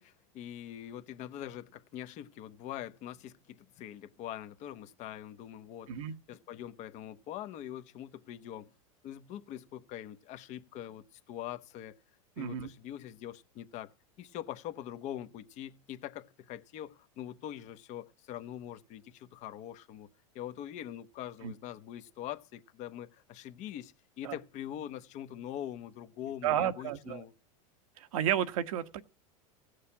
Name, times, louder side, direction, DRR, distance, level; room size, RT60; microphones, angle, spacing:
voice 1, 0.0-8.7 9.0-12.0 12.4-13.9 14.2-20.1 20.3-27.3, left 11 dB, 45° left, 1.0 m, -43 dB
voice 2, 12.4-12.7 21.4-21.5 24.2-24.4 26.4-27.2 28.0-29.0, right 10 dB, 75° right, 1.3 m, -32 dB
16.5 x 6.6 x 8.7 m
supercardioid pair, 125°, 17 cm